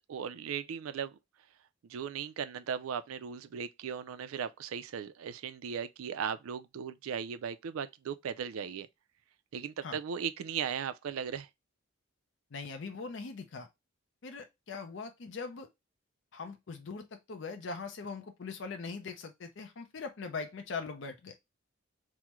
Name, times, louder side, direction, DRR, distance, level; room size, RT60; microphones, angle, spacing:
voice 1, 0.1-1.1 1.9-8.9 9.5-11.5, right 7 dB, 80° right, 0.4 m, -37 dB
voice 2, 12.5-13.7 14.2-15.7 16.3-21.3, left 4 dB, 60° left, 0.5 m, -41 dB
3.5 x 2.1 x 2.9 m
head